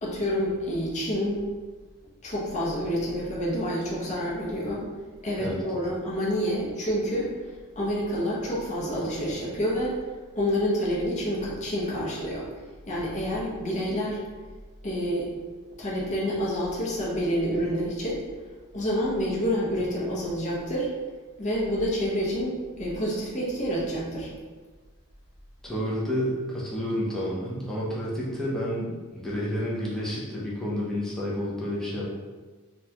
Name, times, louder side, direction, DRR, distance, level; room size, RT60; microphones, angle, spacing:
voice 1, 0.0-1.4 2.2-4.8 5.2-7.3 7.8-9.9 10.3-12.5 12.9-14.2 14.8-15.3 15.8-18.2 18.7-20.9 21.4-24.3, equal, 35° left, -5 dB, 0.8 m, -28 dB
voice 2, 25.6-32.1, equal, ahead, -7 dB, 0.5 m, -30 dB
3.8 x 2.3 x 2.8 m, 1.4 s
head